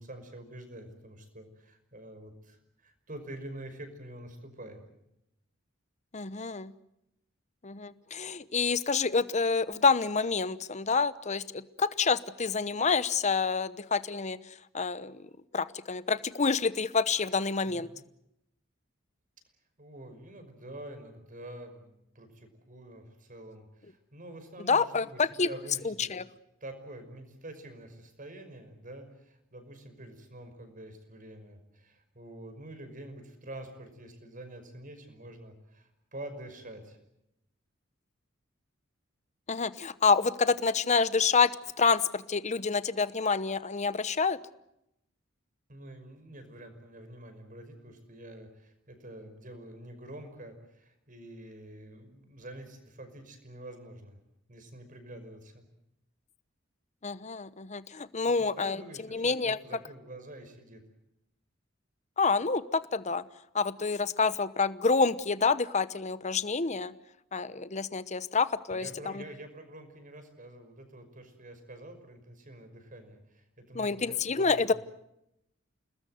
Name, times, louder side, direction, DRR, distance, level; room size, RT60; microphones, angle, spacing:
voice 1, 0.0-4.8 17.7-17.9 19.8-26.1 26.6-37.0 45.7-54.2 54.5-55.6 58.2-60.8 68.7-74.7, right 1 dB, 40° right, 8 dB, 5.7 m, -47 dB
voice 2, 6.1-6.7 7.6-14.4 14.7-15.2 15.5-17.9 24.7-25.5 25.8-26.2 39.5-41.5 41.8-44.4 57.0-58.8 59.1-59.6 62.2-63.2 63.5-66.9 67.3-68.9 69.1-69.2 73.7-74.7, left 4 dB, 35° left, 15 dB, 0.9 m, -28 dB
29.5 x 20.5 x 7.8 m, 0.83 s
head